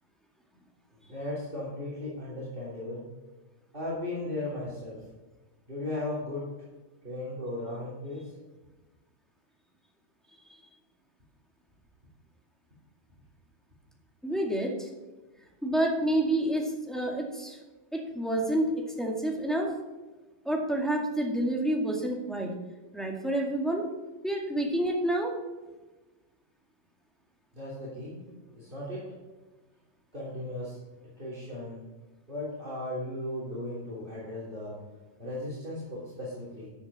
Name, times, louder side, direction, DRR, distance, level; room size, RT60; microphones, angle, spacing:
voice 1, 0.9-3.0 3.7-5.0 5.7-6.5 7.0-8.4 27.5-29.1 30.1-30.8 31.2-31.8 32.3-34.8 35.2-36.7, left 1 dB, 45° right, -7 dB, 3.4 m, -36 dB
voice 2, 14.2-14.9 15.6-17.6 17.9-19.7 20.4-22.5 22.9-23.9 24.2-25.3, right 1 dB, ahead, -1 dB, 1.9 m, -28 dB
13.0 x 8.1 x 4.2 m, 1.2 s
omnidirectional pair, 1.2 m